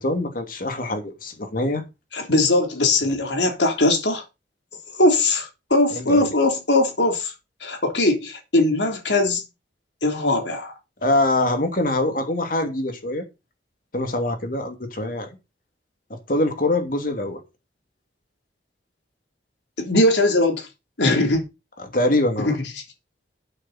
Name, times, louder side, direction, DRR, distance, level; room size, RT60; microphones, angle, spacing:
voice 1, 0.0-1.8 3.0-3.2 5.9-6.3 11.0-13.2 13.9-15.4 16.3-17.4 21.8-22.6, left 1 dB, 50° left, 2.8 m, -24 dB
voice 2, 2.1-4.2 5.0-7.3 7.6-9.4 10.0-10.7 19.8-20.7 21.0-21.4 22.4-22.6, left 2 dB, 80° left, 3.5 m, -20 dB
12.0 x 8.8 x 4.3 m
head